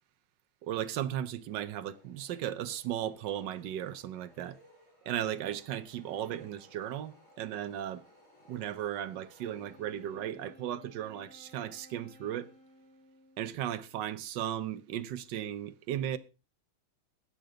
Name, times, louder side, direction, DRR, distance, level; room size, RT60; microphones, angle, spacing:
voice 1, 0.6-4.6 5.1-8.0 8.5-12.5 13.4-16.2, right 11 dB, 65° right, 1.3 m, -36 dB
sound 1, 1.5-10.6, left 1 dB, 80° left, 5.8 m, -62 dB
Wind instrument woodwind instrument, 9.5-14.0, equal, 40° left, 2.7 m, -58 dB
20.0 x 6.7 x 3.8 m
omnidirectional pair, 2.3 m